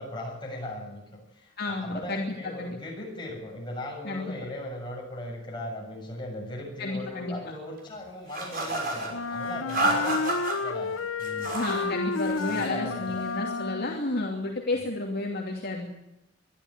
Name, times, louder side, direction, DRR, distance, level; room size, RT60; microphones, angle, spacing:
voice 1, 0.0-11.5 12.5-13.2 14.7-14.8, left 1 dB, 25° left, -1 dB, 7.4 m, -38 dB
voice 2, 1.6-2.8 4.0-4.3 6.8-7.3 11.5-15.9, left 2 dB, 50° left, -1 dB, 2.7 m, -31 dB
sound 1, 8.3-9.1 9.7-10.6 11.2-11.8 12.2-12.7, right 2 dB, 45° right, 6.2 m, -29 dB
Wind instrument woodwind instrument, 9.1-14.1, left 4 dB, 85° left, 0.8 m, -31 dB
23.0 x 12.5 x 9.7 m, 0.89 s
head